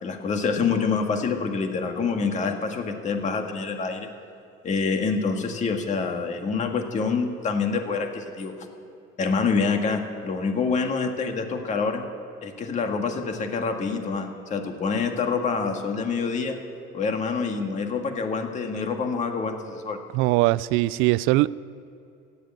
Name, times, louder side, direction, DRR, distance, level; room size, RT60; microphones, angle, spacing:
voice 1, 0.0-4.1 4.6-8.5 9.2-12.0 12.4-16.6 16.9-20.0, left 5 dB, 35° left, 4 dB, 1.8 m, -26 dB
voice 2, 20.1-21.5, right 19 dB, 75° right, 19 dB, 0.4 m, -21 dB
15.5 x 10.0 x 9.0 m, 2.6 s
cardioid pair, 135°, 21 cm